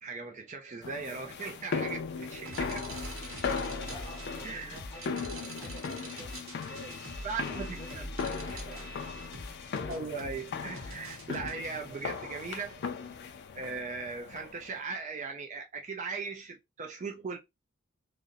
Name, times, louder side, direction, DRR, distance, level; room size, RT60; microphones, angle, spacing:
voice 1, 0.0-2.9 4.4-4.8 7.2-8.0 8.7-8.8 9.9-12.8 13.6-17.4, right 4 dB, 35° right, 0.4 m, -38 dB
sound 1, 0.8-14.7, left 5 dB, 55° left, 0.4 m, -38 dB
sound 2, 2.4-11.5, right 1 dB, 65° right, 0.8 m, -43 dB
voice 2, 3.6-7.1 7.4-9.0, right 1 dB, 15° left, 0.8 m, -51 dB
2.5 x 2.0 x 2.6 m
head